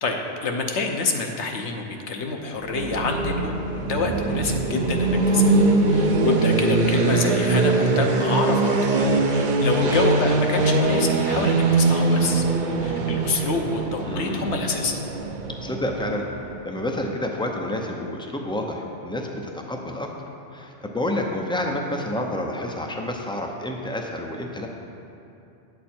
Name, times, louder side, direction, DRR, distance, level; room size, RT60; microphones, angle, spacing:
voice 1, 0.0-5.6 5.9-8.7 9.3-12.4 12.8-15.0, left 3 dB, 70° left, 3 dB, 1.1 m, -27 dB
sound 1, 2.6-16.5, right 3 dB, 50° right, 0.7 m, -22 dB
voice 2, 9.0-9.3 9.8-10.0 14.0-14.5 15.6-16.3 16.6-20.1 20.5-24.7, left 1 dB, 5° left, 1 dB, 0.4 m, -29 dB
9.4 x 7.0 x 4.4 m, 2.7 s
omnidirectional pair, 1.2 m